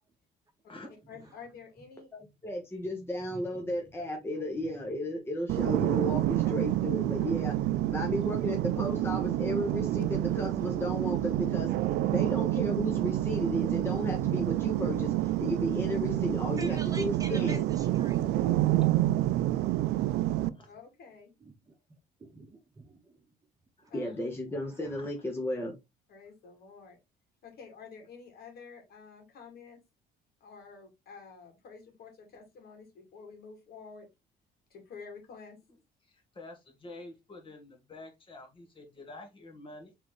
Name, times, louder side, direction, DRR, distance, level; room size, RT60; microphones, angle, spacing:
voice 1, 1.1-2.1 20.7-21.3 23.9-24.1 26.1-27.0 27.4-29.8 30.4-34.1 34.7-35.6, left 5 dB, 65° left, 2.2 m, -49 dB
voice 2, 2.1-7.5 7.9-11.7 12.1-17.6 23.9-25.8, left 1 dB, 15° left, 1.0 m, -34 dB
voice 3, 3.3-3.7 4.9-5.0 16.6-18.4 19.6-19.8 20.3-20.7 21.4-21.5 22.2-23.2 23.8-23.9 24.8-25.1, right 3 dB, 20° right, 1.2 m, -47 dB
sound 1, 5.5-20.5, right 14 dB, 80° right, 0.4 m, -28 dB
voice 4, 20.4-20.7 23.8-24.2 35.7-35.8 36.0-39.9, left 2 dB, 30° left, 2.0 m, -49 dB
4.2 x 3.7 x 3.1 m
cardioid pair, 110°, 17 cm